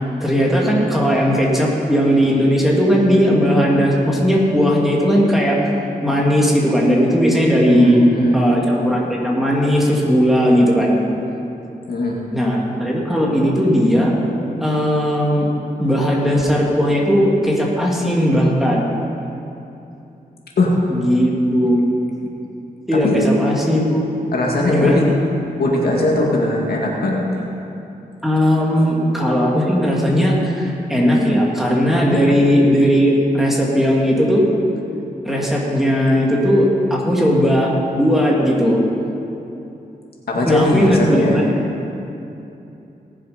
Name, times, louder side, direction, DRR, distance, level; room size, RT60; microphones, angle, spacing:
voice 1, 0.2-5.6 6.0-8.0 8.3-10.9 12.3-14.1 14.6-15.5 15.8-18.8 20.9-21.8 22.9-24.0 24.7-25.0 28.2-34.5 35.2-38.8 40.5-41.4, equal, ahead, -3 dB, 2.4 m, -17 dB
voice 2, 7.7-8.4 11.9-12.2 20.6-20.7 23.0-23.2 24.3-25.1 25.6-27.4 32.1-32.3 40.3-41.4, left 2 dB, 75° left, -2 dB, 2.1 m, -19 dB
18.5 x 7.4 x 5.2 m, 2.8 s
wide cardioid pair, 90°, 16 cm